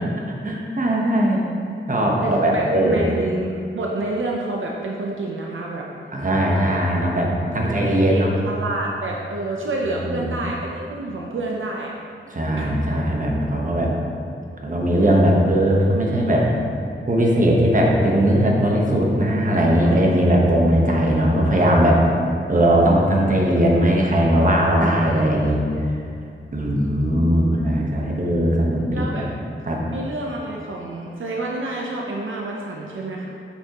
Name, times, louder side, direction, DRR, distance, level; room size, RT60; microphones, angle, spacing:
voice 1, 0.4-1.4 1.9-3.1 6.1-8.3 10.1-10.2 12.3-13.9 14.6-16.5 17.1-22.0 22.5-25.6 26.5-29.1 29.7-29.8, right 1 dB, 40° right, -2 dB, 1.2 m, -19 dB
voice 2, 2.2-5.9 7.8-11.9 12.6-12.7 19.8-20.1 28.9-29.3 29.9-33.3, right 2 dB, 75° right, -2 dB, 0.8 m, -28 dB
8.7 x 7.1 x 3.0 m, 2.4 s
wide cardioid pair, 120°, 21 cm